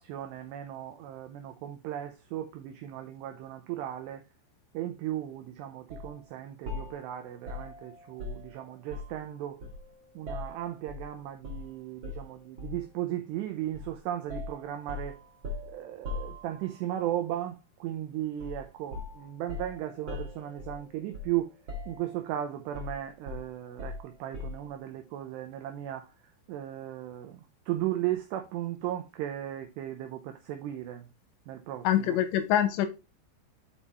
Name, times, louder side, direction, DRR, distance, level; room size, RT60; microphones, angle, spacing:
voice 1, 0.0-4.2 4.7-9.6 10.2-15.2 15.7-21.5 21.9-26.1 26.5-31.1 31.5-32.2, right 12 dB, 80° right, 2.6 m, -36 dB
sound 1, 5.9-6.1 6.7-9.3 9.6-11.1 11.4-11.7 12.0-12.9 13.7-13.9 14.3-16.9 18.4-18.7 18.9-21.4 21.7-22.3 22.7-24.7, left 2 dB, 50° right, 2.1 m, -40 dB
voice 2, 31.8-32.9, left 11 dB, 85° left, 2.8 m, -25 dB
7.3 x 4.9 x 4.1 m
omnidirectional pair, 5.4 m